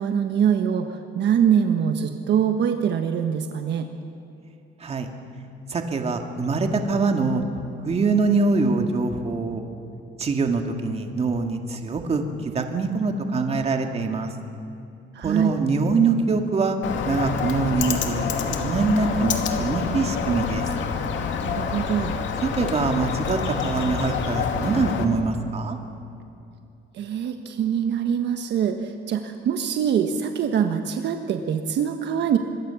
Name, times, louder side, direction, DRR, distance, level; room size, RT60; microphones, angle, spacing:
voice 1, 0.0-3.9 15.1-15.6 21.4-22.2 26.9-32.4, right 8 dB, 65° right, 6 dB, 1.4 m, -23 dB
voice 2, 5.7-7.4 7.8-9.6 10.2-14.3 15.2-16.8 17.0-20.7 22.4-25.8, right 4 dB, 30° right, 4 dB, 2.2 m, -24 dB
Bird, 16.8-25.0, left 6 dB, 75° left, 2.4 m, -27 dB
25.5 x 22.5 x 7.1 m, 2.8 s
cardioid pair, 150°, 20 cm